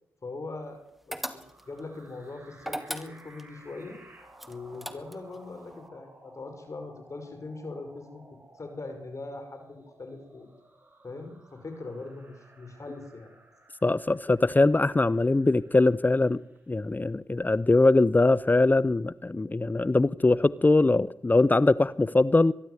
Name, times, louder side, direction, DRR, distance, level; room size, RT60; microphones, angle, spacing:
voice 1, 0.2-0.8 1.1-4.0 4.5-8.2 8.5-10.5 11.0-13.3, left 3 dB, 45° left, 6 dB, 5.6 m, -41 dB
sound 1, 1.1-1.8 2.6-3.5 4.4-5.4, equal, ahead, 2.2 m, -37 dB
sound 2, 1.2-16.9, right 2 dB, 30° right, 7.0 m, -56 dB
voice 2, 13.8-16.4 16.7-22.5, left 2 dB, 25° left, 19 dB, 0.7 m, -22 dB
22.5 x 12.5 x 9.8 m, 0.80 s
supercardioid pair, 45°, 7 cm